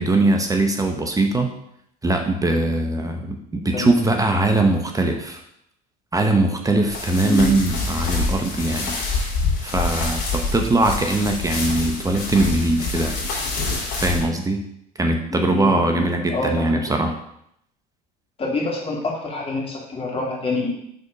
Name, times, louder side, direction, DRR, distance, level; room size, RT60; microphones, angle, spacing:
voice 1, 0.0-1.5 2.0-5.4 6.1-9.0 9.6-13.2 13.9-14.6 15.0-17.1, right 2 dB, 15° right, 4 dB, 0.9 m, -21 dB
sound 1, 6.9-14.2, left 3 dB, 65° left, 2.4 m, -26 dB
voice 2, 15.3-17.0 18.4-20.9, left 3 dB, 30° left, -2 dB, 2.3 m, -27 dB
5.2 x 4.1 x 5.2 m, 0.74 s
hypercardioid pair, 80°, 20 cm